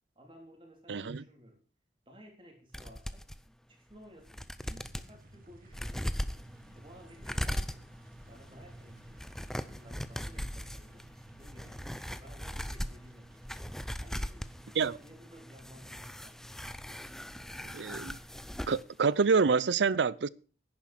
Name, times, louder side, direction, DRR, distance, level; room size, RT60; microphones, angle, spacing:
voice 1, 0.2-1.6 2.1-3.3 3.7-7.9 8.3-9.2 9.5-11.1 11.4-13.4 14.0-16.5, equal, 30° right, 3.5 m, -55 dB
voice 2, 0.9-1.2 14.8-15.0 17.7-18.2 18.7-20.3, right 5 dB, 90° right, 0.5 m, -27 dB
sound 1, 2.7-3.4 3.9-4.0 4.3-5.1 5.7-18.8 19.1-19.2, equal, 5° left, 0.5 m, -40 dB
sound 2, 4.6-15.2, right 1 dB, 50° right, 1.2 m, -56 dB
10.5 x 10.0 x 6.0 m
head